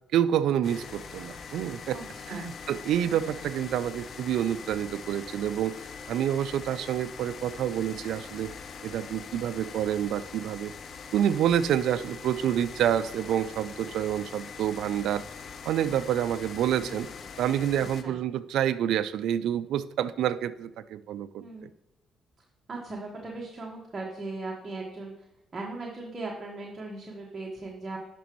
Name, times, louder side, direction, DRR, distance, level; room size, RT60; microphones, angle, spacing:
voice 1, 0.1-2.0 2.3-5.7 6.1-8.5 8.8-10.7 11.1-15.2 15.6-17.1 17.4-21.7, right 10 dB, 80° right, 14 dB, 0.4 m, -28 dB
sound 1, 0.6-18.0, left 5 dB, 55° left, 0.7 m, -43 dB
voice 2, 1.9-2.5 3.1-3.5 16.8-17.0 17.8-18.1 21.4-21.6 22.7-25.1 25.5-28.0, right 2 dB, 30° right, -2 dB, 1.5 m, -38 dB
11.0 x 6.0 x 3.1 m, 0.99 s
cardioid pair, 90°, 0 cm